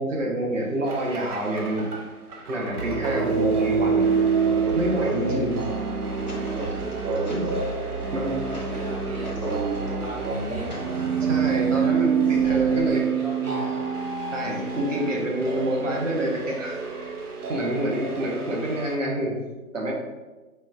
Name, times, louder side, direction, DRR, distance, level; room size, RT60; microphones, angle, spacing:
voice 1, 0.0-1.9 2.5-4.2 4.4-5.7 7.3-7.6 8.0-8.4 11.2-13.0 14.3-17.2 17.5-19.4 19.7-19.9, right 1 dB, 55° right, -2 dB, 1.0 m, -27 dB
sound 1, 0.9-18.9, right 6 dB, 85° right, 0.7 m, -27 dB
sound 2, 6.1-9.9 10.3-11.6 12.2-13.0, equal, 35° left, 0.4 m, -41 dB
voice 2, 8.0-10.8 11.5-12.0 12.3-13.8 17.6-18.2, equal, 30° right, -7 dB, 0.6 m, -39 dB
5.2 x 2.2 x 2.5 m, 1.2 s
figure-of-eight pair, 145°, 44 cm